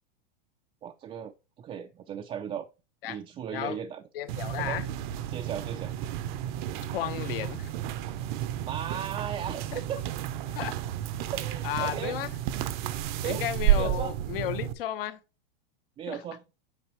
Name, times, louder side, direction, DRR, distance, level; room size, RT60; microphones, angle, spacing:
voice 1, 0.8-2.7 3.0-4.0 4.6-4.8 5.3-5.9 8.6-10.0 11.3-12.2 13.2-13.5 13.7-14.2 16.0-16.4, right 8 dB, 20° right, 0.5 m, -36 dB
voice 2, 4.1-4.8 6.9-7.7 9.7-9.8 10.5-10.8 11.6-12.3 13.2-15.2 16.1-16.2, left 13 dB, 70° left, 1.1 m, -33 dB
sound 1, 4.3-14.7, right 11 dB, 55° right, 0.8 m, -31 dB
8.6 x 5.7 x 3.0 m
supercardioid pair, 135°, 29 cm